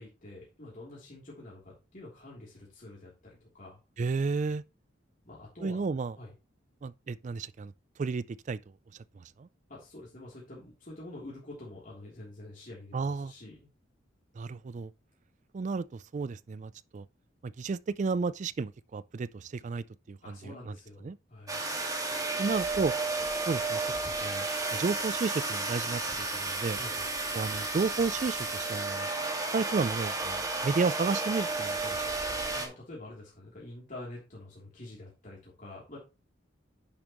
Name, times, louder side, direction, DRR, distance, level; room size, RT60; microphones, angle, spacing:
voice 1, 0.0-3.8 5.2-5.8 6.2-6.3 9.7-13.7 20.2-21.6 26.8-27.1 32.5-36.0, left 2 dB, 45° left, 3.1 m, -47 dB
voice 2, 4.0-4.6 5.6-6.2 6.8-7.7 8.0-8.6 8.9-9.5 12.9-13.3 14.4-14.9 15.5-17.1 17.4-20.7 21.0-21.2 22.4-22.9 23.5-23.8 24.1-26.8 27.3-29.1 29.5-32.0, right 4 dB, 40° right, 0.3 m, -32 dB
sound 1, 21.5-32.7, right 3 dB, 20° right, 2.0 m, -32 dB
10.5 x 7.0 x 3.0 m
head